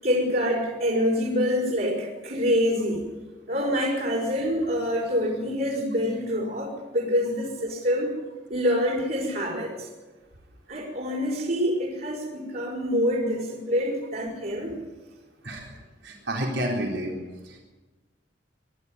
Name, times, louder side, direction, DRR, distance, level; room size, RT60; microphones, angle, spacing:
voice 1, 0.0-3.1 3.5-8.1 8.5-9.9 10.7-14.8, equal, 55° right, -4 dB, 5.4 m, -26 dB
voice 2, 15.4-15.8 16.0-17.1 17.4-17.6, right 1 dB, 85° right, 0 dB, 4.1 m, -30 dB
24.0 x 12.0 x 9.6 m, 1.2 s
head